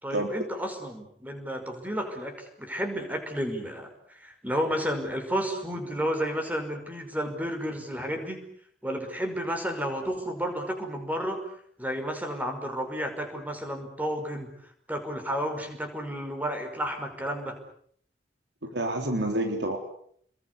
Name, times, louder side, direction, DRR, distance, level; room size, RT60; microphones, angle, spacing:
voice 1, 0.0-8.4 8.8-11.5 11.8-14.5 14.9-17.6, equal, 10° right, 5 dB, 5.6 m, -32 dB
voice 2, 18.6-19.8, right 1 dB, 70° right, 4 dB, 3.9 m, -28 dB
29.0 x 22.0 x 8.4 m, 0.65 s
head